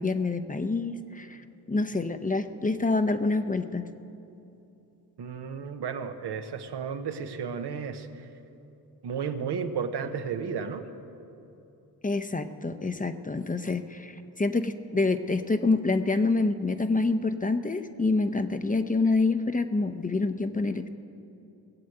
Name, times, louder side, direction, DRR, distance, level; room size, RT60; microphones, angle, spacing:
voice 1, 0.0-3.8 12.0-20.9, left 3 dB, 20° left, 9 dB, 0.6 m, -27 dB
voice 2, 5.2-8.1 9.0-10.9, right 6 dB, 75° right, 7 dB, 1.0 m, -33 dB
18.0 x 7.7 x 7.8 m, 2.9 s
cardioid pair, 70°, 40 cm